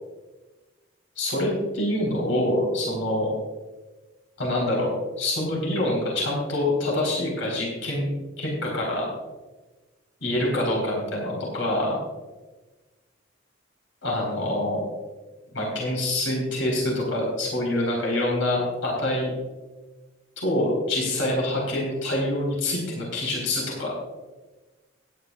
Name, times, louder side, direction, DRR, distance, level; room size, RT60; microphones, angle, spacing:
voice 1, 1.2-3.3 4.4-4.9 5.2-8.1 8.4-9.1 10.2-12.0 14.0-14.8 15.5-19.3 20.4-23.9, left 1 dB, 90° left, -2 dB, 4.4 m, -25 dB
16.5 x 11.5 x 2.4 m, 1.2 s
head